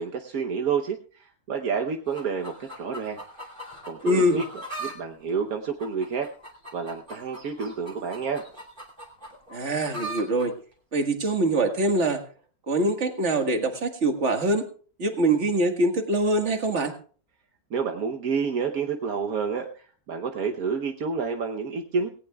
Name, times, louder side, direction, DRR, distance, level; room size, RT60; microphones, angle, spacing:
voice 1, 0.0-3.2 3.9-6.3 6.7-8.4 17.7-19.7 20.1-22.1, right 5 dB, 75° right, 3 dB, 1.5 m, -29 dB
sound 1, 2.1-5.0 5.3-10.5 11.3-11.4, right 1 dB, 30° right, 3.0 m, -40 dB
voice 2, 4.0-4.4 9.5-10.5 10.9-12.2 12.7-14.6 15.0-16.9, right 1 dB, 50° right, 5 dB, 2.0 m, -24 dB
18.5 x 18.0 x 2.3 m, 0.42 s
omnidirectional pair, 1.6 m